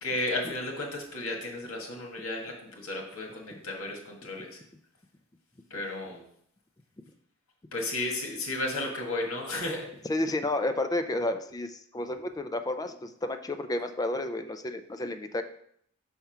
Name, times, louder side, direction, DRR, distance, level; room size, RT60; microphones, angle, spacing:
voice 1, 0.0-4.6 5.7-6.2 7.7-9.9, left 2 dB, 85° left, 1 dB, 1.5 m, -33 dB
voice 2, 10.0-15.4, left 2 dB, 15° left, 7 dB, 0.4 m, -31 dB
5.5 x 3.6 x 5.7 m, 0.68 s
head